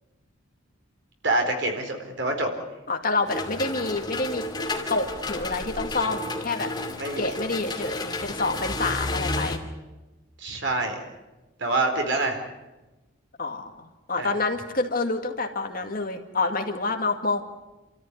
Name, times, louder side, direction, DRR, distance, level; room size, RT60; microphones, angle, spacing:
voice 1, 1.2-2.5 7.0-7.3 10.4-11.0 11.6-12.4 14.2-14.3, right 2 dB, 60° right, 4 dB, 4.2 m, -26 dB
voice 2, 2.9-4.4 4.9-6.7 7.2-9.6 13.4-17.4, left 3 dB, 45° left, 5 dB, 2.1 m, -28 dB
sound 1, 3.3-9.6, left 2 dB, 20° left, 2.6 m, -32 dB
29.0 x 14.0 x 9.8 m, 1.1 s
head